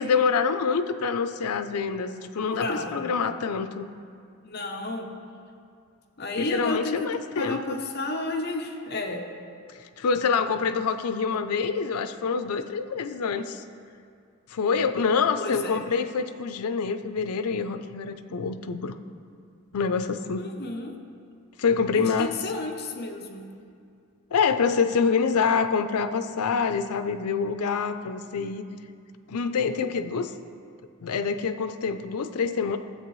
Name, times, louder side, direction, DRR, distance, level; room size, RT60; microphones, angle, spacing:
voice 1, 0.0-3.9 6.4-7.8 9.7-13.6 14.5-18.9 19.7-20.5 21.6-22.4 24.3-28.6 29.3-30.3 31.0-32.8, left 5 dB, 85° left, 10 dB, 0.5 m, -26 dB
voice 2, 2.4-3.1 4.4-5.1 6.2-7.1 7.4-9.2 15.4-15.8 20.4-21.0 21.9-23.5, left 2 dB, 45° left, 3 dB, 0.7 m, -32 dB
13.0 x 8.0 x 3.1 m, 2.3 s
head